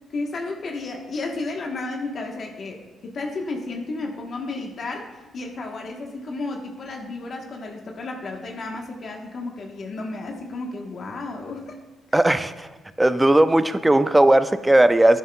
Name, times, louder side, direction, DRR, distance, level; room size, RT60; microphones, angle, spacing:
voice 1, 0.1-11.7, left 3 dB, 50° left, 1 dB, 1.1 m, -32 dB
voice 2, 12.1-12.7 13.0-15.2, right 1 dB, 10° right, 12 dB, 0.5 m, -17 dB
10.5 x 10.5 x 2.3 m, 1.2 s
cardioid pair, 90°, 0 cm